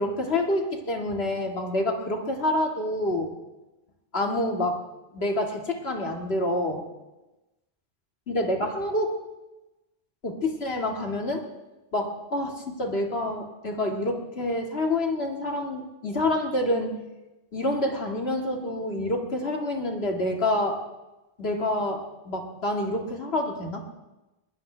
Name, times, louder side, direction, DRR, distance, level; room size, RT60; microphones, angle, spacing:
voice 1, 0.0-3.3 4.1-4.8 5.1-6.8 8.3-9.2 10.2-11.4 11.9-16.9 17.5-20.8 21.4-23.8, left 1 dB, 75° left, 2 dB, 2.3 m, -27 dB
22.5 x 18.5 x 3.4 m, 1.0 s
omnidirectional pair, 1.0 m